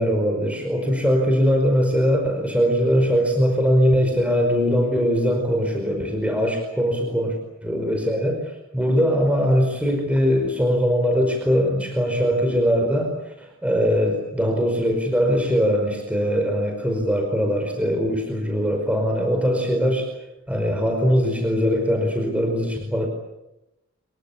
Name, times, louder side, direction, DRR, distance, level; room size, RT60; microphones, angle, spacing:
voice 1, 0.0-7.3 7.6-20.1 20.5-23.1, equal, 5° right, 3 dB, 5.0 m, -21 dB
26.5 x 23.0 x 8.6 m, 0.92 s
head